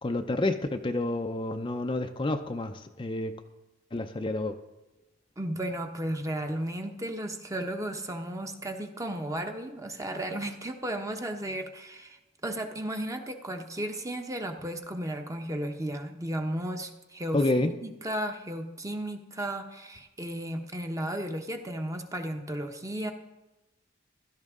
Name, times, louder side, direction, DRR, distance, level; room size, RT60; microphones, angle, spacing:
voice 1, 0.0-3.3 3.9-4.6 17.3-17.7, left 2 dB, 25° left, 6 dB, 0.5 m, -29 dB
voice 2, 5.4-23.1, right 1 dB, 15° right, 5 dB, 0.9 m, -34 dB
16.0 x 12.5 x 3.7 m, 1.1 s
head